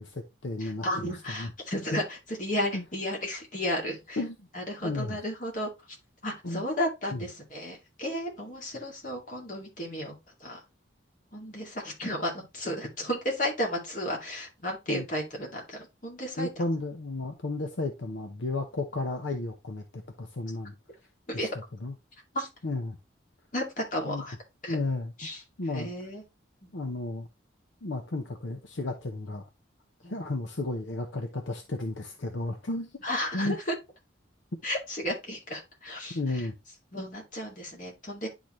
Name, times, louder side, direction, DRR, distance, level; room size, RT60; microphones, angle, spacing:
voice 1, 0.0-1.5 2.7-2.8 4.2-4.4 4.8-5.2 6.4-6.6 7.1-7.2 14.9-15.0 16.4-20.7 21.3-21.9 22.6-23.0 24.0-24.2 24.7-25.1 25.6-25.9 26.7-27.3 27.8-29.5 30.1-32.9 33.3-33.6 36.1-36.5, left 2 dB, 75° left, 0.8 m, -33 dB
voice 2, 0.6-4.2 4.5-5.7 6.2-10.1 10.4-10.6 11.3-16.5 21.3-21.5 22.3-22.5 23.5-24.3 24.6-24.8 25.2-25.4 25.7-26.2 30.0-30.2 33.0-33.6 34.6-36.4 36.9-38.3, left 1 dB, 40° left, 2.2 m, -33 dB
10.0 x 4.0 x 3.0 m
head